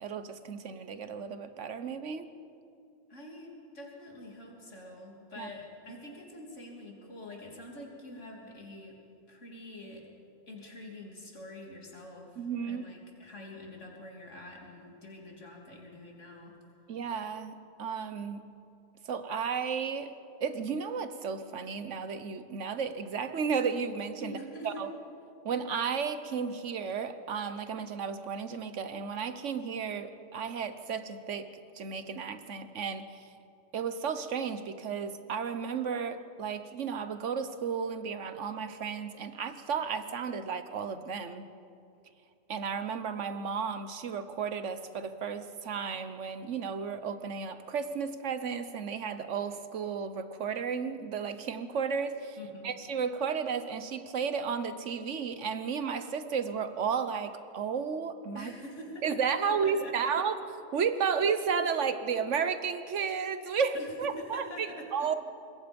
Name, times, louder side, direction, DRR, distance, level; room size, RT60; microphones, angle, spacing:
voice 1, 0.0-2.3 5.4-5.5 12.4-12.8 16.9-18.4 19.0-20.1 20.4-24.4 24.6-24.9 25.4-31.5 31.7-33.3 33.7-41.5 42.5-52.4 52.6-58.5 59.0-60.4 60.7-65.1, right 6 dB, 85° right, 10 dB, 1.4 m, -33 dB
voice 2, 3.1-9.0 9.3-10.1 10.5-16.6 24.2-24.9 52.4-52.7 58.3-59.2 59.5-60.1 63.7-65.1, left 1 dB, 90° left, -1 dB, 3.4 m, -46 dB
26.0 x 21.0 x 5.3 m, 2.6 s
omnidirectional pair, 1.2 m